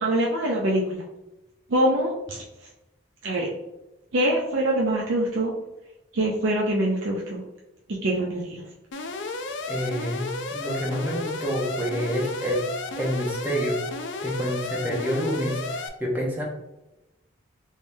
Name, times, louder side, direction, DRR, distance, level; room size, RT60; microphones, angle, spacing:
voice 1, 0.0-1.0 1.7-2.4 3.2-3.5 4.1-5.5 6.1-7.4 8.0-8.6, right 1 dB, 75° right, -2 dB, 0.5 m, -24 dB
Alarm, 8.9-15.9, left 3 dB, 65° left, 0.4 m, -33 dB
voice 2, 9.7-12.6 13.0-13.8 14.2-16.4, equal, 10° right, -3 dB, 0.7 m, -28 dB
3.5 x 3.2 x 2.6 m, 0.96 s
head